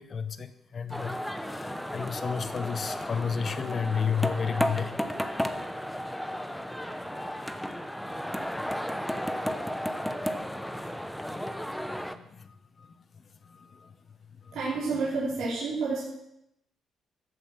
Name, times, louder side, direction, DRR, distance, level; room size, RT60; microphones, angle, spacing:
voice 1, 0.0-5.4 6.9-7.5 9.7-9.8 10.6-10.9 12.1-12.5 12.8-12.9 13.5-13.9 14.5-14.6, left 6 dB, 45° left, 12 dB, 1.0 m, -33 dB
sound 1, 0.9-12.2, equal, 5° left, 0.9 m, -33 dB
voice 2, 14.5-16.0, right 3 dB, 75° right, -7 dB, 4.1 m, -29 dB
14.0 x 7.8 x 6.0 m, 0.81 s
cardioid pair, 90°, 0 cm